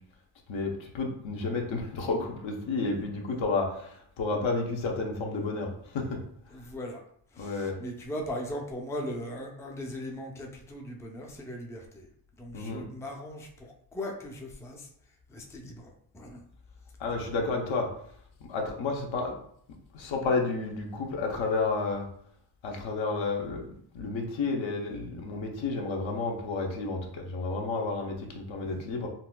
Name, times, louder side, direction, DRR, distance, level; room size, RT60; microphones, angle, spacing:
voice 1, 0.5-6.2 7.4-7.8 12.5-12.9 17.0-17.9 18.5-19.4 19.9-22.1 22.6-29.1, left 3 dB, 75° left, 1 dB, 0.8 m, -31 dB
voice 2, 6.5-7.0 7.3-12.1 12.4-16.4 17.1-17.3 28.6-28.8, equal, 5° left, 1 dB, 0.4 m, -39 dB
4.0 x 2.2 x 2.2 m, 0.66 s
cardioid pair, 80°, 47 cm